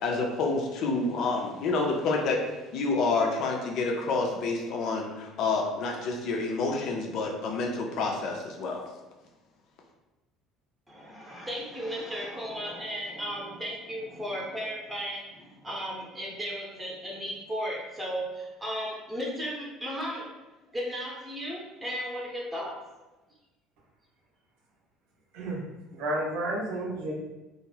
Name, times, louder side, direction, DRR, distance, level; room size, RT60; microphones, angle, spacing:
voice 1, 0.0-2.4 2.7-8.8, left 3 dB, 50° left, 1 dB, 0.4 m, -28 dB
voice 2, 10.9-20.3 20.7-22.7, equal, 10° right, -3 dB, 0.7 m, -35 dB
voice 3, 25.9-27.1, right 1 dB, 60° right, -4 dB, 0.6 m, -31 dB
2.4 x 2.1 x 3.2 m, 1.1 s
figure-of-eight pair, 60°, 0 cm